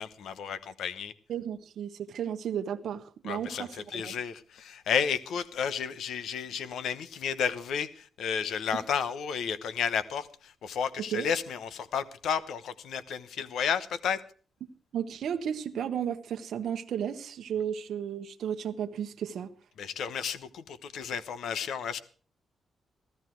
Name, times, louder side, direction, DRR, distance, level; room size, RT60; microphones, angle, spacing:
voice 1, 0.0-1.1 3.2-14.2 19.8-22.0, left 7 dB, 75° left, 1.0 m, -32 dB
voice 2, 1.3-4.1 11.1-11.3 14.9-19.5, right 8 dB, 65° right, 1.0 m, -34 dB
15.5 x 13.5 x 4.6 m
wide cardioid pair, 165°, 0 cm